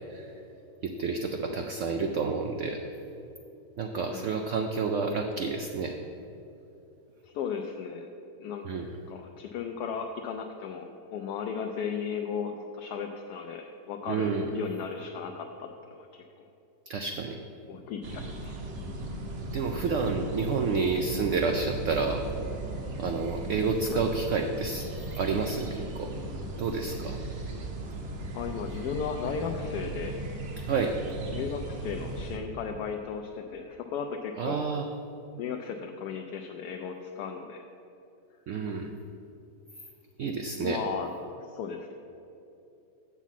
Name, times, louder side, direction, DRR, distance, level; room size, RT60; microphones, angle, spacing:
voice 1, 0.8-2.8 3.8-5.9 8.6-8.9 14.1-14.5 16.9-17.4 19.5-22.3 23.0-24.9 25.2-26.1 26.6-27.2 30.7-31.0 34.4-34.9 38.5-38.9 40.2-40.8, right 4 dB, 75° right, 4 dB, 0.6 m, -29 dB
voice 2, 7.2-8.1 8.4-8.7 9.1-16.2 17.7-18.5 23.9-24.0 28.3-30.2 31.3-34.7 35.4-37.6 40.5-41.1 41.5-41.9, left 6 dB, 75° left, 3 dB, 1.0 m, -35 dB
sound 1, 18.0-32.4, right 2 dB, 50° right, 1.0 m, -37 dB
7.1 x 7.1 x 5.8 m, 2.8 s
omnidirectional pair, 1.9 m